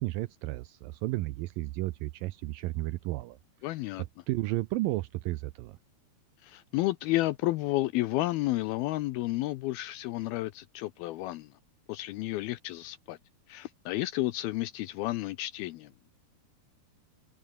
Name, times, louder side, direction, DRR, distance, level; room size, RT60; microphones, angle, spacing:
voice 1, 0.0-3.4 4.3-5.8, right 18 dB, 80° right, 2.0 m, -33 dB
voice 2, 3.6-4.0 6.4-11.5 11.9-13.2 13.5-16.1, left 17 dB, 80° left, 2.4 m, -31 dB
omnidirectional pair, 4.7 m